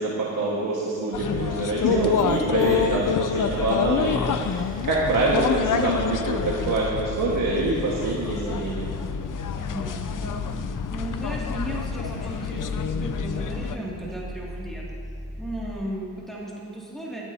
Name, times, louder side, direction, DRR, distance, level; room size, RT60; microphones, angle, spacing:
voice 1, 0.0-8.9, right 2 dB, 85° right, -4 dB, 1.7 m, -25 dB
sound 1, 1.1-13.8, left 7 dB, 75° left, 0.6 m, -28 dB
sound 2, 2.2-15.7, equal, 40° left, 2.2 m, -38 dB
voice 2, 9.6-14.8 15.4-17.2, right 1 dB, ahead, -6 dB, 2.4 m, -35 dB
17.0 x 12.0 x 2.8 m, 2.7 s
cardioid pair, 70°, 32 cm